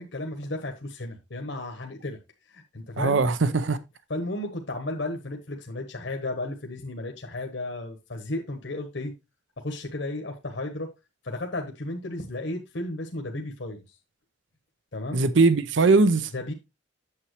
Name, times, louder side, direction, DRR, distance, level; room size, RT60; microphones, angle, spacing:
voice 1, 0.0-2.2 2.5-3.2 4.1-9.1 9.6-10.9 11.2-13.8 14.9-15.2 16.3-16.5, left 2 dB, 75° left, 1.2 m, -34 dB
voice 2, 3.0-3.8 15.1-16.3, right 3 dB, 80° right, 0.7 m, -20 dB
8.8 x 7.1 x 3.1 m
head